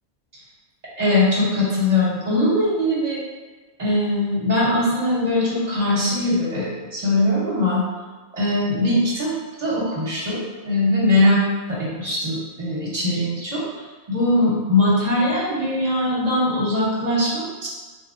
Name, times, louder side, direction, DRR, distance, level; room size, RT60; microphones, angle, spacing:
voice 1, 1.0-3.2 3.8-7.8 8.3-9.3 9.6-11.4 11.7-13.6 14.1-17.7, left 1 dB, 40° right, -6 dB, 0.9 m, -21 dB
3.4 x 2.8 x 2.4 m, 1.3 s
omnidirectional pair, 1.1 m